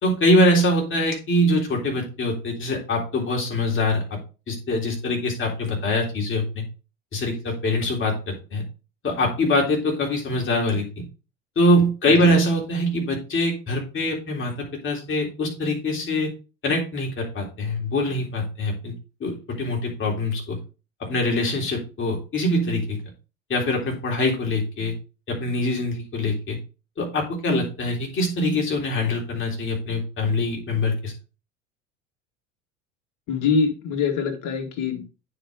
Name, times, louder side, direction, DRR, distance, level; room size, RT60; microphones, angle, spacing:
voice 1, 0.0-4.2 4.5-6.6 7.1-8.6 9.0-11.0 11.6-16.3 16.6-19.0 19.2-20.6 21.0-23.0 23.5-24.9 25.3-26.6 27.0-31.1, left 1 dB, 35° left, 0 dB, 3.5 m, -23 dB
voice 2, 33.3-35.0, left 5 dB, 50° left, 3 dB, 2.1 m, -24 dB
9.2 x 5.0 x 3.7 m, 0.32 s
figure-of-eight pair, 70°, 37 cm